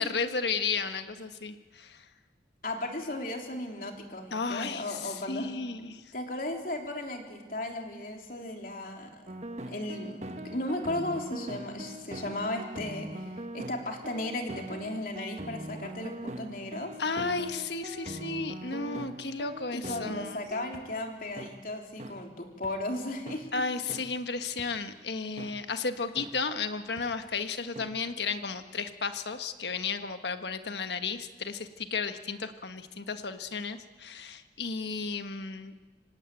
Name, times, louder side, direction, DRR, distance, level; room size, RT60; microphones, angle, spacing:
voice 1, 0.0-2.1 4.3-6.1 17.0-20.4 23.5-35.7, left 4 dB, 70° left, 8 dB, 1.4 m, -33 dB
voice 2, 2.6-5.5 6.1-9.3 9.7-16.9 19.7-23.6, left 1 dB, 50° left, 2 dB, 3.3 m, -36 dB
sound 1, 9.3-20.8 21.4-21.5 22.0-22.1 22.6-22.7 23.3-23.4 23.9-24.0 24.6-24.7 25.4-25.5 26.2-26.3 27.0-27.1 27.8-27.9, right 1 dB, 40° right, 1.3 m, -41 dB
25.5 x 17.0 x 9.1 m, 1.4 s
head